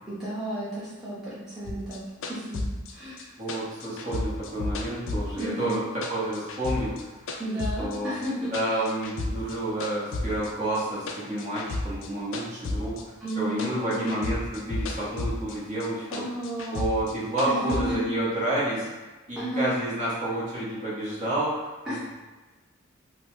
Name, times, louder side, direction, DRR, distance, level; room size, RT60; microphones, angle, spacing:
voice 1, 0.1-2.0 2.3-2.6 2.9-3.3 5.4-5.8 7.4-8.9 13.2-14.2 16.1-16.9 17.5-18.0 19.4-19.7 21.8-22.0, right 1 dB, ahead, -12 dB, 0.7 m, -33 dB
sound 1, 1.7-5.8 6.0-9.6 9.8-13.3 13.6-15.6 15.8-17.8, left 2 dB, 65° left, 0.3 m, -32 dB
voice 2, 3.4-5.8 6.1-7.2 7.8-8.1 8.5-16.2 16.7-18.9 19.3-22.0, right 1 dB, 35° right, -8 dB, 0.8 m, -30 dB
2.9 x 2.1 x 3.0 m, 1.2 s
head